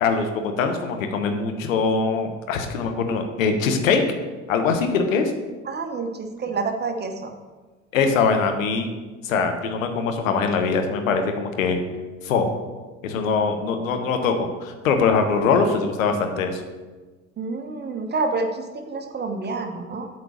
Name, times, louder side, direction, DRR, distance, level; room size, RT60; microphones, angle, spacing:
voice 1, 0.0-4.0 4.5-5.3 7.9-8.9 9.2-11.8 12.2-12.5 13.0-16.6, left 5 dB, 70° left, 6 dB, 1.0 m, -22 dB
voice 2, 5.6-7.3 17.4-20.1, right 3 dB, 25° right, 6 dB, 1.0 m, -28 dB
8.2 x 4.4 x 6.3 m, 1.3 s
figure-of-eight pair, 60°, 41 cm